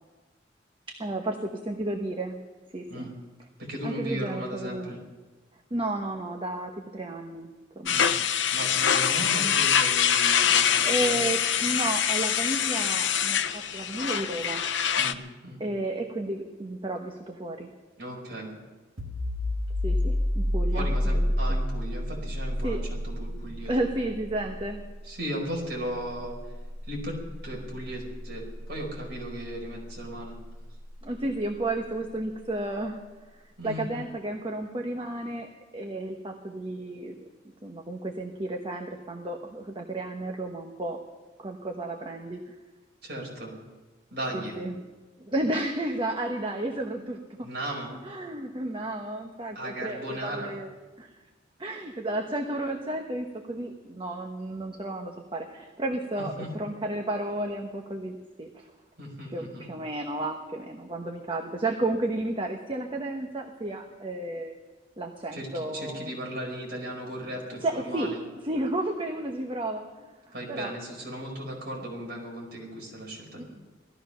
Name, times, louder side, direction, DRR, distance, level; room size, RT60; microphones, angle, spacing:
voice 1, 0.9-2.4 2.7-3.1 3.8-4.9 5.7-8.0 10.8-14.6 15.6-17.7 19.8-21.6 22.6-22.8 23.6-24.8 31.0-33.0 33.3-37.2 37.6-41.0 41.4-42.5 44.3-44.8 45.2-47.5 48.0-50.7 51.0-51.1 51.6-58.7 59.3-64.5 65.0-66.1 67.6-68.1 68.4-70.1 70.5-70.7 73.4-73.5, right 1 dB, 30° right, 3 dB, 1.1 m, -32 dB
voice 2, 3.6-5.0 7.9-8.1 8.5-11.2 15.0-15.6 18.0-18.5 20.7-23.7 25.0-26.3 26.8-30.3 33.6-33.9 43.0-43.5 44.1-44.6 47.4-48.0 49.5-50.5 56.2-56.5 59.0-59.7 65.3-68.2 70.3-73.4, right 1 dB, 55° right, -1 dB, 4.9 m, -36 dB
sound 1, 7.9-15.1, left 8 dB, 75° left, 0.7 m, -24 dB
sound 2, 19.0-30.4, left 1 dB, 80° right, 2.1 m, -31 dB
18.0 x 14.0 x 5.7 m, 1.2 s
head